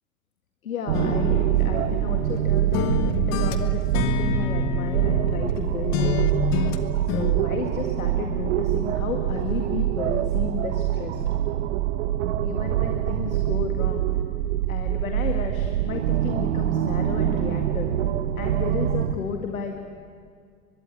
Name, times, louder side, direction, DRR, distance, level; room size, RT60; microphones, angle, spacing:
voice 1, 0.6-6.2 7.1-11.2 12.4-14.1 14.7-17.9 18.4-19.8, left 6 dB, 70° left, 3 dB, 2.1 m, -33 dB
sound 1, 0.9-2.4 2.7-5.6 5.9-7.3, left 9 dB, 40° left, 1.7 m, -28 dB
sound 2, 0.9-19.2, right 12 dB, 60° right, 1.1 m, -25 dB
23.5 x 22.0 x 8.8 m, 2.1 s
figure-of-eight pair, 80°, 43 cm